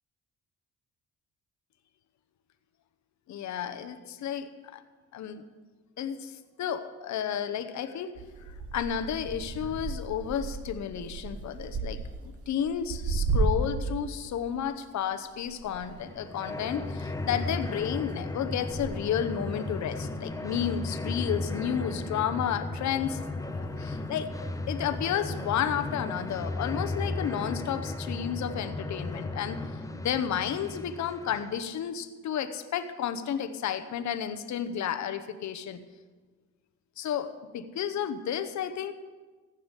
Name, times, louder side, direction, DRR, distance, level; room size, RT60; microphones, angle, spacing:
voice 1, 3.3-4.8 5.1-5.4 6.0-8.1 8.4-23.2 23.6-24.3 24.7-29.6 30.0-35.8 37.0-38.9, left 9 dB, 70° left, 9 dB, 1.0 m, -32 dB
sound 1, 8.2-14.0 14.3-21.4 21.6-22.4 23.0-24.9 25.3-25.7 26.4-26.5, right 3 dB, 50° right, 1.4 m, -35 dB
sound 2, 15.8-31.6, left 2 dB, 10° left, 0.9 m, -35 dB
15.0 x 6.0 x 8.2 m, 1.3 s
cardioid pair, 90°, 30 cm